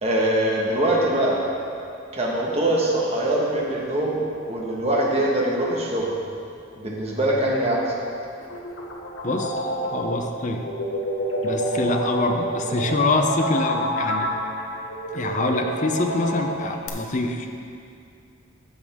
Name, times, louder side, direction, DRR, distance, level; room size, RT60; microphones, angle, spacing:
voice 1, 0.0-1.4 2.1-4.2 4.5-6.1 6.8-7.9, right 1 dB, 30° right, -3 dB, 1.4 m, -23 dB
sound 1, 8.4-16.9, equal, 75° left, 1.1 m, -28 dB
voice 2, 9.2-10.7 11.4-14.3 15.1-17.5, left 2 dB, 40° left, 4 dB, 0.6 m, -25 dB
14.5 x 5.4 x 3.6 m, 2.5 s
head